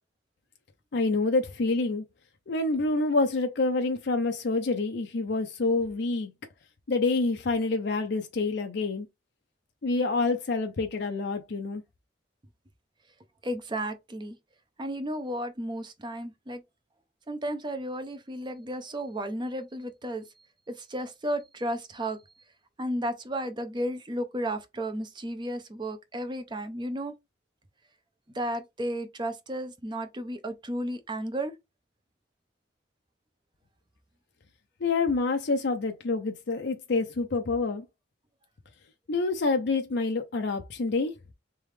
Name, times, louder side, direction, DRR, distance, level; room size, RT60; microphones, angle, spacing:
voice 1, 0.9-2.0 2.5-6.3 6.9-9.1 9.8-11.8 34.8-37.8 39.1-41.1, left 3 dB, 60° left, 0.5 m, -27 dB
voice 2, 13.4-14.4 14.8-16.6 17.3-20.3 20.7-22.2 22.8-27.1 28.3-31.5, right 1 dB, 25° right, 0.6 m, -33 dB
3.6 x 3.4 x 3.2 m
head